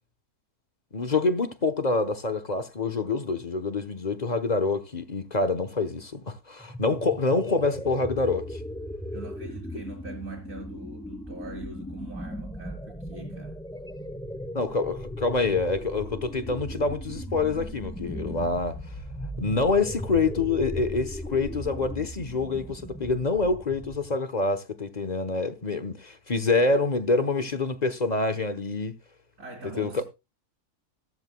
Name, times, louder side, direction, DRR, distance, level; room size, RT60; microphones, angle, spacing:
voice 1, 0.9-8.6 14.5-18.8 19.4-28.9 29.8-30.0, left 3 dB, 30° left, 1.0 m, -26 dB
sound 1, 6.6-24.2, equal, 5° left, 0.6 m, -37 dB
voice 2, 9.1-13.6 29.4-30.0, right 3 dB, 60° right, 3.0 m, -42 dB
14.5 x 13.0 x 2.3 m
omnidirectional pair, 1.6 m